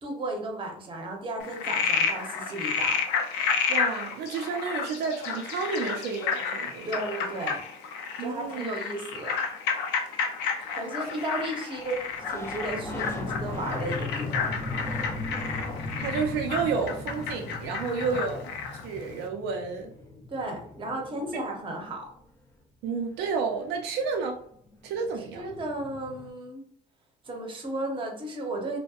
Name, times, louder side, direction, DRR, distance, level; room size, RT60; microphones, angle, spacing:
voice 1, 0.0-3.0 6.8-7.6 8.2-9.4 10.8-12.0 12.3-14.5 17.9-18.2 20.3-22.1 25.3-26.6 27.2-28.8, right 1 dB, 30° right, 1 dB, 0.7 m, -34 dB
Frog, 1.4-18.8, left 6 dB, 90° left, 0.4 m, -31 dB
voice 2, 3.7-7.0 8.2-8.7 10.7-10.8 11.1-11.2 16.0-18.4 18.8-19.9 22.8-24.4 24.8-25.4, right 5 dB, 80° right, 3 dB, 0.4 m, -31 dB
sound 1, 11.8-22.2 24.2-24.3 24.5-26.3, left 2 dB, 15° left, 0.5 m, -38 dB
2.6 x 2.1 x 2.3 m, 0.65 s
cardioid pair, 110°, 17 cm